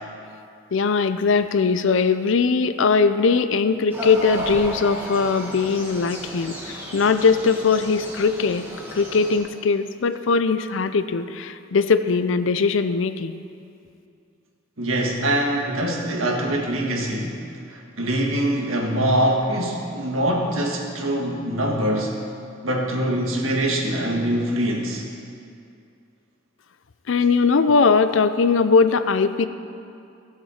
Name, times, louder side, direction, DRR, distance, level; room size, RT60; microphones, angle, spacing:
voice 1, 0.7-8.6 8.9-13.4 27.1-29.5, left 4 dB, 70° left, 11 dB, 0.5 m, -20 dB
sound 1, 3.9-9.4, right 1 dB, 10° right, 1.9 m, -34 dB
voice 2, 14.8-17.4 17.7-22.2 22.6-25.0, right 1 dB, 85° right, 0 dB, 1.6 m, -23 dB
15.5 x 7.6 x 4.4 m, 2.5 s
head